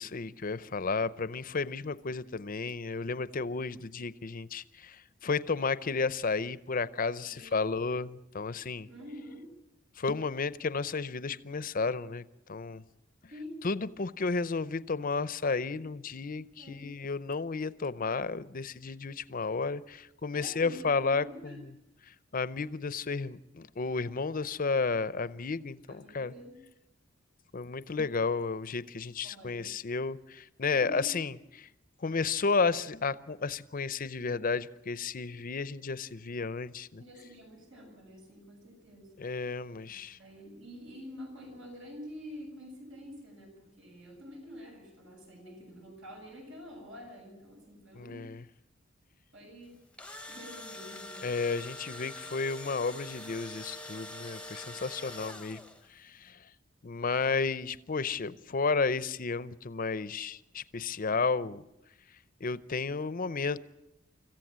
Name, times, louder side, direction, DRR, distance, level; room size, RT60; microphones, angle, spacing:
voice 1, 0.0-8.9 10.0-12.8 13.6-21.5 22.3-26.3 27.5-31.4 32.0-37.0 39.2-40.2 48.0-48.4 51.2-55.6 56.0-56.4 56.8-61.6 62.4-63.6, left 4 dB, 45° left, 16 dB, 0.6 m, -32 dB
voice 2, 7.2-7.9 8.9-9.5 13.3-13.5 16.6-16.8 20.3-21.6 25.9-26.6 29.2-29.7 30.7-31.2 37.0-39.1 39.9-48.3 49.3-49.8 50.3-51.3, equal, 80° right, 2 dB, 7.0 m, -47 dB
Engine / Drill, 49.7-56.0, left 1 dB, 5° left, 0.8 m, -44 dB
26.0 x 14.5 x 7.5 m, 0.89 s
head